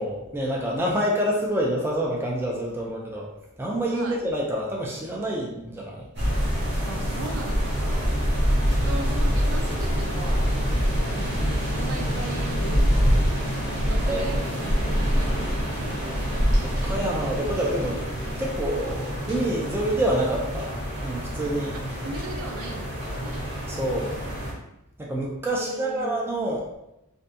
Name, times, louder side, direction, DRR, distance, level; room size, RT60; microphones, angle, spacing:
voice 1, 0.0-3.3 3.6-6.0 14.1-14.3 16.8-18.0 18.4-20.7 21.0-21.8 23.7-24.1 25.0-26.8, right 1 dB, 10° right, -3 dB, 0.3 m, -27 dB
sound 1, 6.2-24.5, equal, 55° right, 1.0 m, -25 dB
voice 2, 6.9-8.2 8.7-10.6 11.1-12.9 13.9-16.6 21.7-23.5 25.5-26.2, right 2 dB, 75° right, 2 dB, 0.5 m, -39 dB
2.5 x 2.2 x 2.6 m, 0.88 s
head